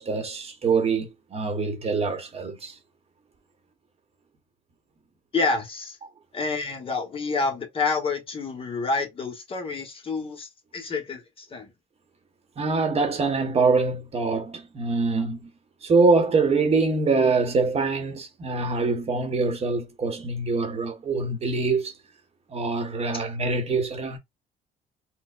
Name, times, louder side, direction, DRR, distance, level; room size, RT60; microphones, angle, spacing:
voice 1, 0.0-2.8 12.6-15.5 15.8-21.9 22.5-24.2, right 4 dB, 35° right, 1.0 m, -24 dB
voice 2, 5.3-6.0 6.3-11.7, left 4 dB, 35° left, 1.0 m, -28 dB
4.3 x 2.2 x 2.3 m
cardioid pair, 110°, 17 cm